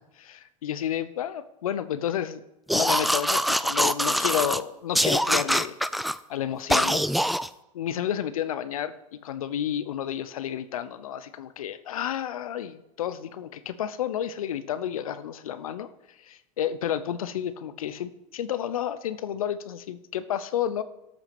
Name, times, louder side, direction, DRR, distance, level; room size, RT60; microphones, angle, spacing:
voice 1, 0.2-2.4 2.7-5.8 6.3-7.1 7.7-15.9 16.2-20.8, left 10 dB, 85° left, 14 dB, 0.8 m, -31 dB
sound 1, 2.7-4.6 4.9-6.2 6.7-7.5, equal, ahead, 0.4 m, -24 dB
13.0 x 6.0 x 6.0 m, 0.91 s
hypercardioid pair, 95°, 18 cm